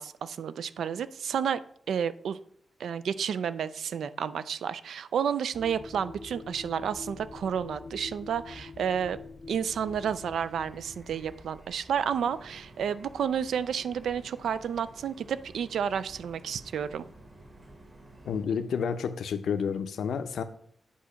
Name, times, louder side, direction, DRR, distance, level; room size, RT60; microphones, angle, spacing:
voice 1, 0.0-1.6 1.9-2.4 2.8-9.2 9.5-17.1, right 8 dB, 90° right, 15 dB, 0.3 m, -31 dB
sound 1, 5.5-11.4, left 3 dB, 40° left, 0.6 m, -45 dB
sound 2, 9.8-18.4, equal, 20° right, 1.2 m, -54 dB
sound 3, 11.9-18.9, right 2 dB, 50° right, 1.1 m, -55 dB
voice 2, 18.3-20.4, left 6 dB, 85° left, 10 dB, 0.5 m, -30 dB
8.5 x 2.9 x 5.6 m, 0.65 s
wide cardioid pair, 155°, 0 cm